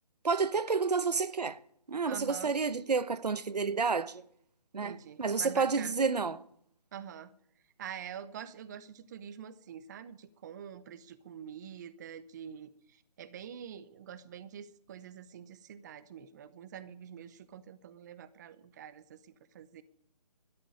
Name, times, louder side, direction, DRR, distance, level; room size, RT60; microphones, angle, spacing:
voice 1, 0.2-1.6 1.9-4.2 4.7-6.4, right 5 dB, 80° right, 1.0 m, -30 dB
voice 2, 2.0-2.5 4.8-5.9 6.9-7.3 7.8-19.8, right 8 dB, 25° right, 0.7 m, -46 dB
13.0 x 10.0 x 9.9 m
figure-of-eight pair, 150°, 21 cm